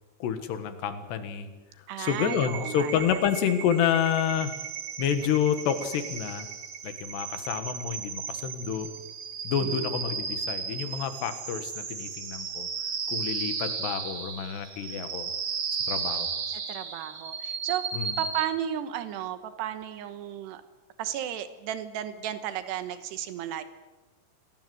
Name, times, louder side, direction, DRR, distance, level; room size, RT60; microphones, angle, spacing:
voice 1, 0.2-1.5 2.0-4.5 5.0-6.5 6.8-8.9 9.5-12.7 13.1-15.3 15.9-16.3 17.9-18.2, left 8 dB, 80° left, 9 dB, 3.6 m, -29 dB
voice 2, 1.9-3.2 9.6-9.9 16.5-17.9 18.2-20.6 21.0-23.6, right 11 dB, 85° right, 11 dB, 3.3 m, -34 dB
sound 1, 2.1-18.5, right 6 dB, 50° right, 1.6 m, -35 dB
26.0 x 18.5 x 7.9 m, 1.2 s
omnidirectional pair, 4.8 m